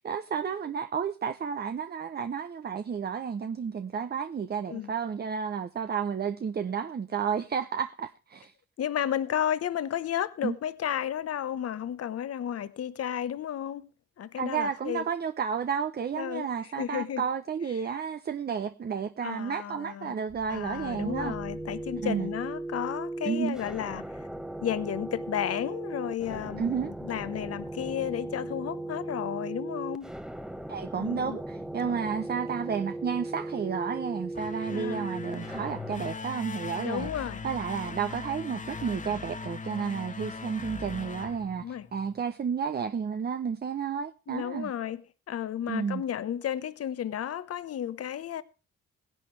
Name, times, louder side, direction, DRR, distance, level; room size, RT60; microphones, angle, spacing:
voice 1, 0.0-8.5 10.4-10.5 14.4-21.3 22.0-22.3 23.3-23.6 26.6-26.9 30.7-44.7 45.7-46.0, right 6 dB, 35° right, 0.7 m, -32 dB
voice 2, 8.8-13.9 14.2-15.0 16.2-16.5 16.8-17.2 19.2-20.2 20.5-24.3 24.6-30.1 31.0-31.4 31.8-32.0 34.7-35.1 36.8-37.4 41.6-41.9 44.3-48.4, left 10 dB, 55° left, 1.0 m, -33 dB
sound 1, 20.3-36.0, right 2 dB, ahead, 0.9 m, -38 dB
sound 2, 34.2-42.2, left 4 dB, 25° left, 1.2 m, -40 dB
17.0 x 11.0 x 3.3 m
cardioid pair, 90°, 30 cm